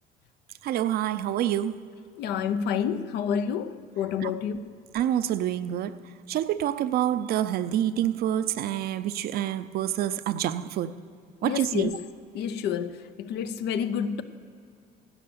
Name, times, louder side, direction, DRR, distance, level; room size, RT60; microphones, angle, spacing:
voice 1, 0.6-1.7 4.2-4.3 4.9-5.9 6.3-10.9 11.4-12.0, right 11 dB, 65° right, 0.5 m, -27 dB
voice 2, 2.2-4.7 11.4-12.1 12.3-14.2, left 8 dB, 80° left, 0.7 m, -29 dB
12.0 x 8.8 x 6.8 m
cardioid pair, 110°, 17 cm